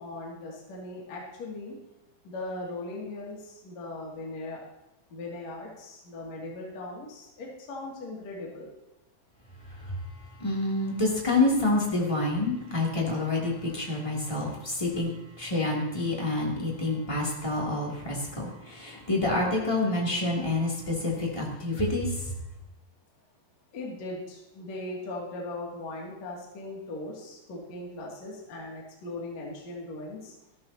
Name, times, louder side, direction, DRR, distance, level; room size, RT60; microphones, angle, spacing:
voice 1, 0.0-1.7 2.2-3.4 3.6-4.6 5.1-8.7 23.7-30.3, left 2 dB, 40° left, -3 dB, 3.0 m, -39 dB
voice 2, 10.4-15.1 15.4-22.1, left 2 dB, 10° left, -4 dB, 1.4 m, -27 dB
15.0 x 13.5 x 2.9 m, 0.90 s
omnidirectional pair, 5.7 m